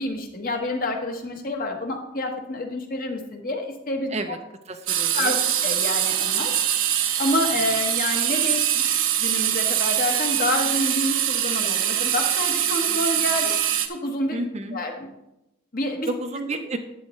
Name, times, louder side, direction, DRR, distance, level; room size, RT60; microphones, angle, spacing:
voice 1, 0.0-4.4 5.1-6.5 7.2-8.8 9.2-13.5 13.9-14.4 14.7-15.1 15.7-16.1, left 2 dB, 40° left, 3 dB, 1.3 m, -28 dB
voice 2, 4.7-5.4 14.3-14.8 16.0-16.8, right 2 dB, 30° right, 7 dB, 0.5 m, -30 dB
sound 1, 4.9-13.9, right 10 dB, 65° right, 0.8 m, -23 dB
11.0 x 8.5 x 3.1 m, 0.90 s
head